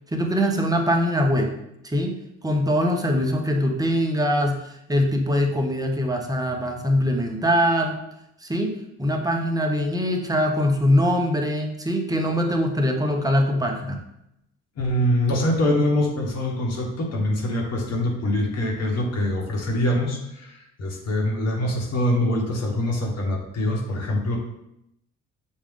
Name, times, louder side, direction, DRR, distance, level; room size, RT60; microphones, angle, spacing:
voice 1, 0.1-1.5 1.8-2.2 2.4-4.6 4.9-8.0 8.4-8.7 9.0-14.0, equal, 10° right, 2 dB, 0.7 m, -22 dB
voice 2, 14.8-24.4, left 1 dB, 55° left, 0 dB, 1.2 m, -24 dB
6.3 x 2.3 x 3.6 m, 0.80 s
cardioid pair, 90°, 30 cm